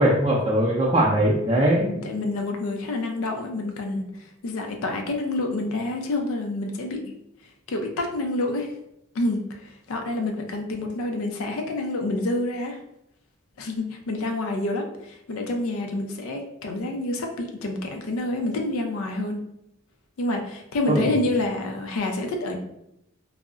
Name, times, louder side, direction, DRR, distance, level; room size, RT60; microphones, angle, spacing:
voice 1, 0.0-1.9 20.9-21.1, right 1 dB, 20° right, -5 dB, 0.4 m, -20 dB
voice 2, 1.7-7.1 7.7-8.7 9.1-12.8 13.6-19.4 20.2-22.6, left 2 dB, 90° left, 3 dB, 0.4 m, -28 dB
2.3 x 2.0 x 3.6 m, 0.81 s
head